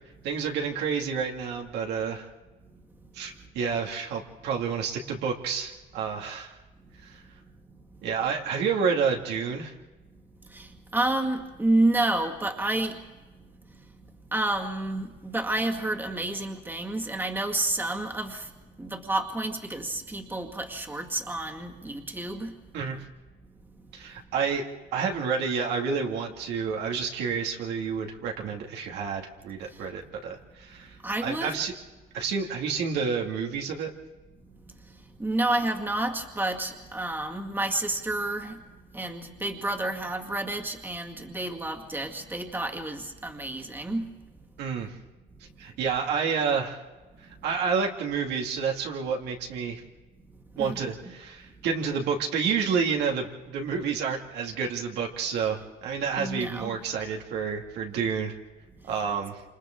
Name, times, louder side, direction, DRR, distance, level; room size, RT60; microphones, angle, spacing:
voice 1, 0.2-2.3 3.1-6.6 7.0-7.2 8.0-9.7 22.7-23.0 23.9-24.7 24.9-31.7 32.1-33.9 44.6-45.0 45.6-46.8 47.4-49.8 50.6-58.3 58.9-59.4, right 6 dB, 80° right, 0 dB, 2.4 m, -29 dB
voice 2, 10.5-13.0 14.3-18.5 18.8-22.5 31.0-31.6 35.2-38.6 38.9-44.1 50.6-51.2 56.2-56.8, right 2 dB, 10° right, 2 dB, 2.1 m, -29 dB
27.5 x 27.5 x 3.9 m, 1.2 s
cardioid pair, 110°, 17 cm